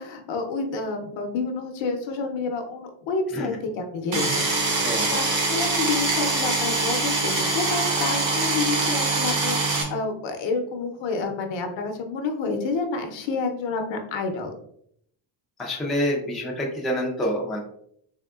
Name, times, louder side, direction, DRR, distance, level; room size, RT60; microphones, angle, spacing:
voice 1, 0.0-14.5, left 4 dB, 70° left, 5 dB, 0.8 m, -29 dB
sound 1, 4.1-9.8, right 3 dB, 40° right, 1.0 m, -24 dB
voice 2, 4.8-5.2 15.6-17.6, equal, ahead, -2 dB, 0.4 m, -27 dB
3.6 x 3.4 x 2.3 m, 0.68 s
cardioid pair, 145°, 47 cm